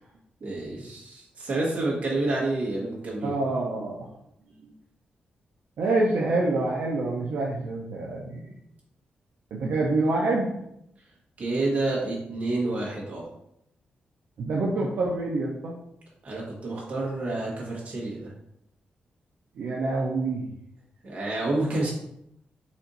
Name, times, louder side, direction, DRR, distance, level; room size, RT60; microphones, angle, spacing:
voice 1, 0.4-3.4 11.4-13.3 16.2-18.2 21.0-21.9, right 2 dB, 45° right, -3 dB, 1.3 m, -29 dB
voice 2, 3.2-4.1 4.6-4.7 5.8-8.5 9.5-10.5 14.4-15.7 19.6-20.5, right 2 dB, 70° right, -3 dB, 0.6 m, -26 dB
4.2 x 2.6 x 4.1 m, 0.78 s
wide cardioid pair, 175°, 3 cm